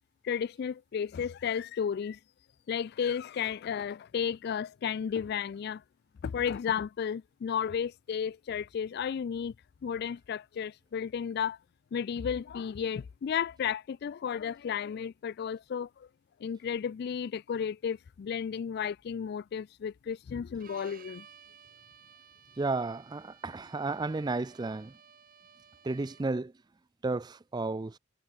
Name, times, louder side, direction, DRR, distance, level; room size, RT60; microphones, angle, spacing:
voice 1, 0.2-2.2 2.7-5.8 6.2-9.5 9.8-11.6 11.9-16.1 16.4-21.3, left 7 dB, 50° left, 0.3 m, -33 dB
Bowed string instrument, 20.6-26.4, right 7 dB, 45° right, 3.7 m, -56 dB
voice 2, 22.6-24.9 25.8-26.5 27.0-27.9, right 3 dB, 20° right, 0.4 m, -32 dB
head